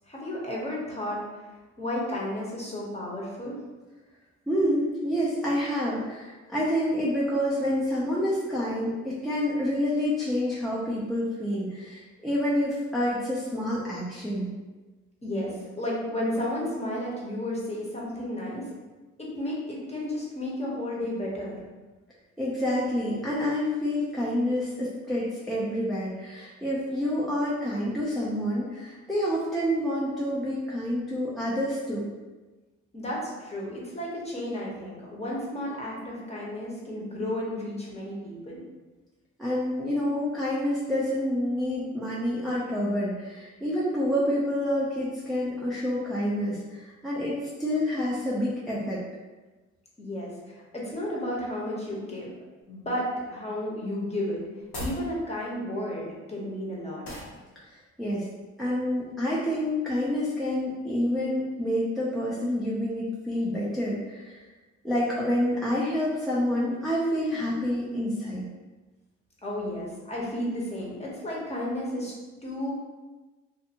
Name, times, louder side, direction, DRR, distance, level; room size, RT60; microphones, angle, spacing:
voice 1, 0.1-1.2 1.8-3.6 15.2-18.7 19.2-21.6 32.9-38.6 50.0-52.4 52.7-54.4 54.8-57.0 69.4-72.1 72.4-72.7, left 1 dB, 20° left, -4 dB, 0.9 m, -32 dB
voice 2, 4.5-14.5 22.4-32.1 39.4-49.0 57.7-58.3 58.6-64.4 64.8-68.4, equal, ahead, -8 dB, 0.5 m, -28 dB
sound 1, 54.6-55.1 57.0-57.4, left 1 dB, 75° left, 1.0 m, -35 dB
2.6 x 2.5 x 2.8 m, 1.2 s
cardioid pair, 90°, 30 cm